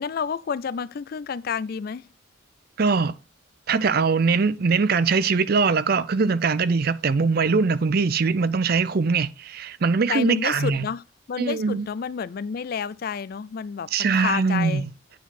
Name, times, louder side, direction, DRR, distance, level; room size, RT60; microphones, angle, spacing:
voice 1, 0.0-2.1 10.1-11.0 11.3-14.8, left 6 dB, 50° left, 0.3 m, -30 dB
voice 2, 2.8-3.2 3.7-10.9 11.4-11.9 13.9-14.9, right 4 dB, 50° right, 0.5 m, -22 dB
9.2 x 4.6 x 4.2 m
head